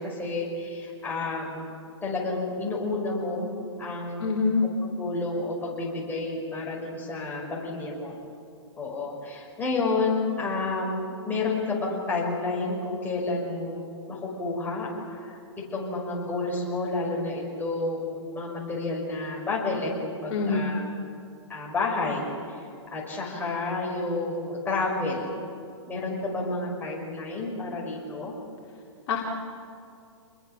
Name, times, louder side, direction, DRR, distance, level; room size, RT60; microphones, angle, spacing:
voice 1, 0.0-1.7 2.0-4.3 5.0-8.1 8.8-15.4 15.7-20.8 21.5-22.6 22.9-25.3 25.9-28.3, left 3 dB, 10° left, -3 dB, 5.8 m, -30 dB
voice 2, 4.2-4.6 20.3-20.7 29.1-29.2, left 4 dB, 50° left, -3 dB, 3.1 m, -25 dB
27.5 x 21.5 x 7.0 m, 2.5 s
hypercardioid pair, 140°, 16 cm